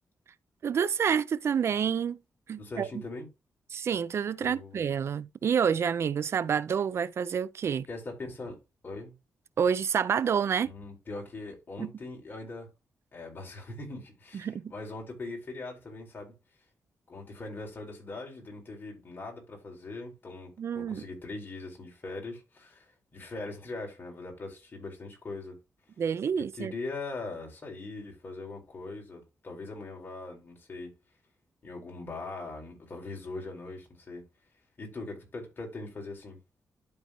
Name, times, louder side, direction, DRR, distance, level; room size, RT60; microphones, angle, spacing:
voice 1, 0.6-2.2 2.5-3.0 3.7-7.9 9.6-10.7 11.8-11.9 14.3-14.7 20.6-21.0 26.0-26.7, right 7 dB, 60° right, 0.5 m, -28 dB
voice 2, 2.6-3.3 4.4-4.8 7.9-8.6 8.8-9.1 10.6-12.7 13.1-16.3 17.1-25.6 26.3-30.9 31.6-34.2 34.8-36.4, left 3 dB, 40° left, 4.3 m, -41 dB
12.0 x 4.3 x 3.0 m
cardioid pair, 90°, 5 cm